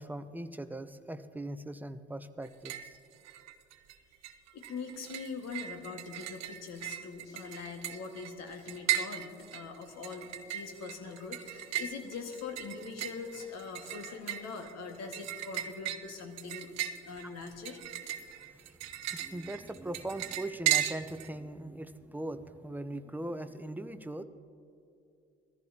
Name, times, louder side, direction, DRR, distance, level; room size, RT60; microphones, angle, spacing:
voice 1, 0.0-2.7 17.2-17.3 19.1-24.2, right 1 dB, 5° right, 11 dB, 0.7 m, -40 dB
sound 1, 2.4-3.0 3.2-3.9 4.2-21.3, right 12 dB, 55° right, 0.8 m, -37 dB
voice 2, 4.5-17.8, left 4 dB, 55° left, 4 dB, 1.9 m, -42 dB
20.5 x 14.5 x 2.9 m, 2.8 s
hypercardioid pair, 60°, 31 cm